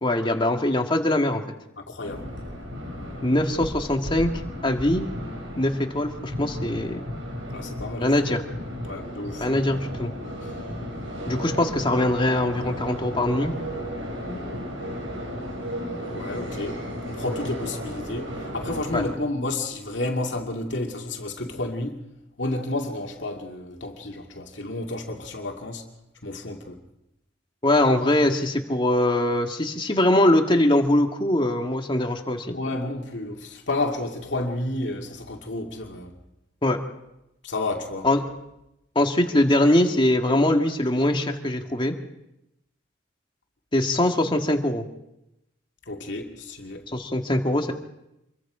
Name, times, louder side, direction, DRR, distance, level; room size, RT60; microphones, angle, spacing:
voice 1, 0.0-1.4 3.2-4.3 4.6-5.1 5.6-7.1 8.0-8.4 9.4-10.1 11.3-13.5 18.9-19.0 27.6-32.6 36.6-36.8 38.0-38.3 39.0-41.9 43.7-44.9 46.9-47.7, left 1 dB, 25° left, 2.0 m, -22 dB
voice 2, 1.8-2.3 7.5-8.1 8.8-9.5 10.4-10.5 16.1-22.0 22.4-25.9 26.2-26.8 32.5-36.2 37.4-38.1 45.9-46.9, left 2 dB, 65° left, 2.4 m, -31 dB
sound 1, 2.0-19.1, equal, 75° right, 6.3 m, -34 dB
27.0 x 22.5 x 5.0 m
head